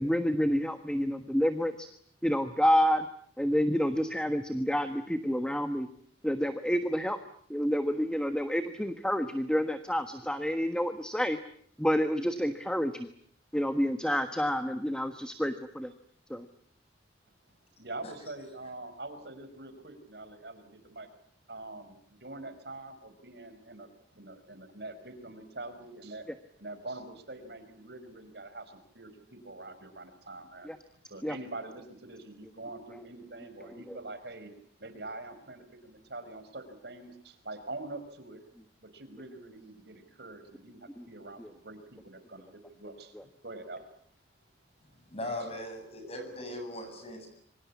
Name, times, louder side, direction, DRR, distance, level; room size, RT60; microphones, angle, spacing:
voice 1, 0.0-1.9 2.2-3.0 3.4-5.9 6.2-7.2 7.5-11.4 11.8-13.1 13.5-15.9 16.3-16.4 30.7-30.8 31.2-31.3 41.0-41.1 41.4-41.5, equal, 5° left, 8 dB, 1.3 m, -28 dB
voice 2, 17.8-21.1 21.5-26.2 26.6-30.7 31.1-34.5 34.8-38.4 38.8-43.8, right 2 dB, 60° right, 9 dB, 5.0 m, -44 dB
voice 3, 45.1-47.3, left 1 dB, 35° left, 7 dB, 7.9 m, -39 dB
27.0 x 24.5 x 8.5 m, 0.63 s
head